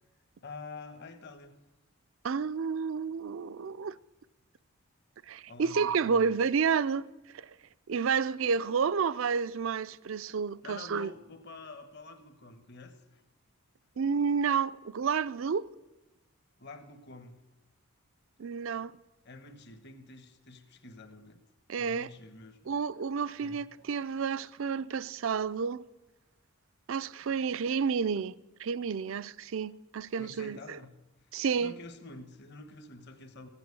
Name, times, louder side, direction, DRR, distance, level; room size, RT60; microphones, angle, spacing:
voice 1, 0.4-1.6 5.5-6.2 10.6-13.2 16.6-17.4 19.2-21.4 21.8-22.7 23.4-23.6 30.2-31.0 31.5-33.5, left 3 dB, 50° left, 1.2 m, -48 dB
voice 2, 2.2-4.0 5.3-7.6 7.9-11.1 14.0-15.7 18.4-19.0 21.7-22.1 22.7-25.8 26.9-30.8 31.3-31.7, right 6 dB, 65° right, 0.4 m, -30 dB
15.0 x 8.9 x 8.4 m
head